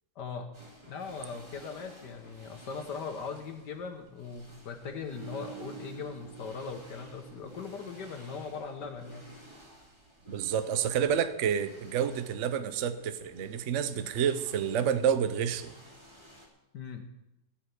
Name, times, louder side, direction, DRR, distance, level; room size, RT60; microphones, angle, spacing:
voice 1, 0.2-0.5 0.9-9.2 16.7-17.0, left 5 dB, 70° left, 5 dB, 1.7 m, -40 dB
sound 1, 0.5-16.5, equal, 15° right, 2.2 m, -54 dB
sound 2, 5.1-8.3 8.6-8.9, right 14 dB, 75° right, 1.4 m, -49 dB
voice 2, 10.3-15.7, right 8 dB, 55° right, 10 dB, 1.0 m, -29 dB
16.5 x 5.7 x 8.3 m, 0.92 s
omnidirectional pair, 1.9 m